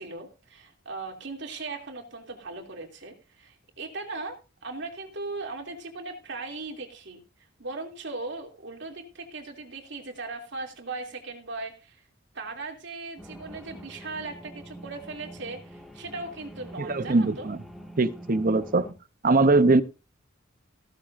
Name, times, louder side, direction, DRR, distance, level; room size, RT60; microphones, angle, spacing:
voice 1, 0.0-4.4 4.6-7.2 7.6-12.0 12.3-17.5, right 3 dB, 60° right, 2.9 m, -38 dB
sound 1, 13.2-18.9, equal, ahead, 2.0 m, -45 dB
voice 2, 16.8-17.6 18.0-18.9 19.2-19.8, right 3 dB, 45° right, 0.8 m, -21 dB
16.0 x 13.0 x 2.6 m
head